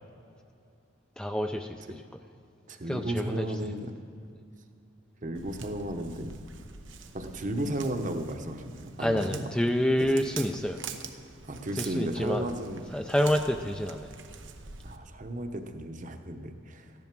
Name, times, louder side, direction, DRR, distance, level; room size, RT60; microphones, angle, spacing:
voice 1, 1.2-2.0 2.8-3.7 9.0-10.8 11.8-12.5 12.9-14.1, equal, 5° left, 4 dB, 0.4 m, -28 dB
voice 2, 2.7-3.9 5.2-6.3 7.1-9.4 10.0-10.1 11.4-12.8 14.8-16.9, right 1 dB, 45° right, 6 dB, 1.0 m, -34 dB
Walk footsteps, 5.3-15.0, right 6 dB, 90° right, 0.9 m, -45 dB
14.5 x 10.5 x 6.1 m, 2.5 s
head